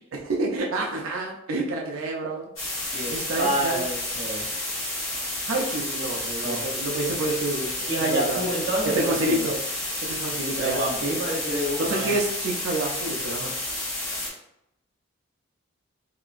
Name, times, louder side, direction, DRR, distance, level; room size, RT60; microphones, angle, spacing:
voice 1, 0.1-2.5 3.1-3.8 5.4-8.4 8.8-9.6 10.0-11.2 11.8-13.5, right 2 dB, 85° right, -1 dB, 0.4 m, -28 dB
sound 1, 2.6-14.3, left 1 dB, 70° left, 1.3 m, -31 dB
voice 2, 2.9-4.5 6.3-6.7 7.9-9.5 10.6-12.1, right 1 dB, 65° right, -3 dB, 0.8 m, -28 dB
2.8 x 2.4 x 2.4 m, 0.82 s
head